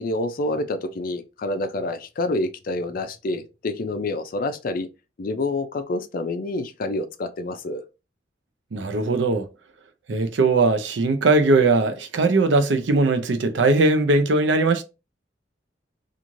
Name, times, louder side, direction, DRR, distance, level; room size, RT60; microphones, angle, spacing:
voice 1, 0.0-4.9 5.2-7.8, left 2 dB, 50° left, 0.4 m, -27 dB
voice 2, 8.7-9.5 10.1-14.8, right 3 dB, 75° right, 0.5 m, -19 dB
3.0 x 2.5 x 2.5 m
head